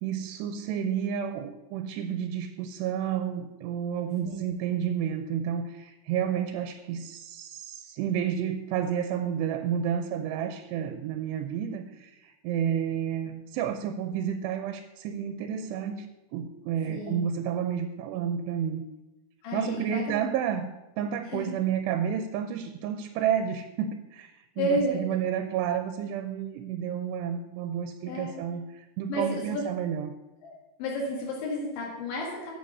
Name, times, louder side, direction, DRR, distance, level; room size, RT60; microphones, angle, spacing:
voice 1, 0.0-16.1 16.3-18.8 19.5-20.7 21.0-30.2, right 8 dB, 80° right, 9 dB, 2.7 m, -31 dB
voice 2, 16.9-17.2 19.4-20.1 21.3-21.6 24.6-25.0 28.1-28.4 29.1-29.6 30.4-30.5 30.8-32.5, left 1 dB, 90° left, -2 dB, 4.2 m, -31 dB
11.5 x 7.6 x 5.4 m, 1.0 s
omnidirectional pair, 5.1 m